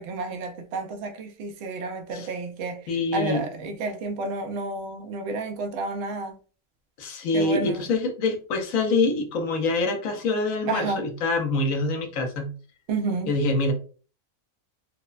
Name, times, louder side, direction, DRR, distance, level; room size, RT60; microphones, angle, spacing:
voice 1, 0.0-2.8 3.1-6.3 7.3-7.8 10.7-11.0 12.9-13.3, right 3 dB, 65° right, 0.7 m, -30 dB
voice 2, 2.9-3.5 7.0-12.5 13.3-13.7, left 3 dB, 75° left, 1.0 m, -25 dB
3.1 x 2.1 x 2.4 m
omnidirectional pair, 1.5 m